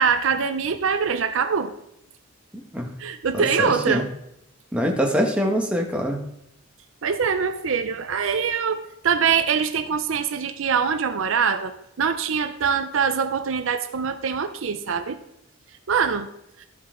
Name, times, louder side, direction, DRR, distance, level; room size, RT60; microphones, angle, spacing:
voice 1, 0.0-1.7 3.0-4.1 7.0-15.2 15.9-16.3 16.6-16.7, right 6 dB, 65° right, 9 dB, 0.5 m, -23 dB
voice 2, 3.3-4.0 4.7-6.2, equal, 5° right, 0 dB, 1.1 m, -24 dB
13.0 x 5.5 x 3.7 m, 0.79 s
head